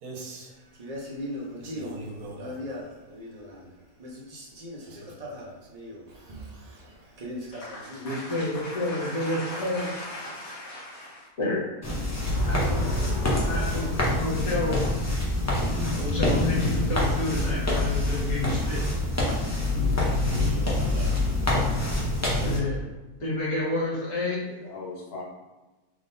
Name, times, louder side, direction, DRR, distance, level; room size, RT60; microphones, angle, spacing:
voice 1, 0.0-0.6 1.6-2.9 4.8-5.3 20.0-21.2, right 2 dB, 75° right, 0 dB, 1.3 m, -42 dB
Male speech man speaking, 0.7-3.7 4.0-8.1, left 1 dB, 50° right, 0.4 m, -39 dB
voice 2, 7.5-11.3, left 1 dB, 65° left, -4 dB, 1.5 m, -39 dB
voice 3, 8.0-9.9 11.4-11.6 11.9-12.0 12.5-13.1 13.4-14.8 16.0-18.8 22.4-22.8 23.2-24.4, left 2 dB, 50° left, -5 dB, 1.4 m, -30 dB
sound 1, 11.8-22.6, left 2 dB, 25° left, 0.3 m, -26 dB
voice 4, 12.3-14.2 24.2-25.2, equal, 85° left, -4 dB, 1.6 m, -32 dB
3.6 x 3.6 x 2.6 m, 1.1 s
omnidirectional pair, 1.6 m